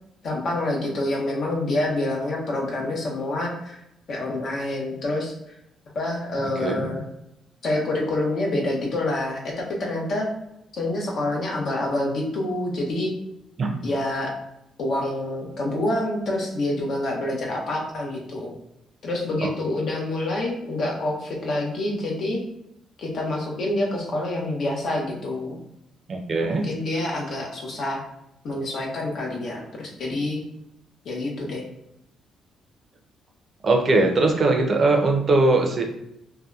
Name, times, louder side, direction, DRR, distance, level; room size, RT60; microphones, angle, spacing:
voice 1, 0.2-3.8 4.1-5.6 5.9-7.0 7.6-10.3 10.7-13.1 13.8-14.3 14.8-18.5 19.0-22.4 23.0-25.6 26.5-28.0 28.4-30.4 31.0-31.6, left 1 dB, 60° left, -1 dB, 0.6 m, -27 dB
voice 2, 26.1-26.7 33.6-35.8, right 2 dB, 45° right, 2 dB, 0.5 m, -20 dB
2.7 x 2.1 x 2.3 m, 0.83 s
cardioid pair, 90°, 0 cm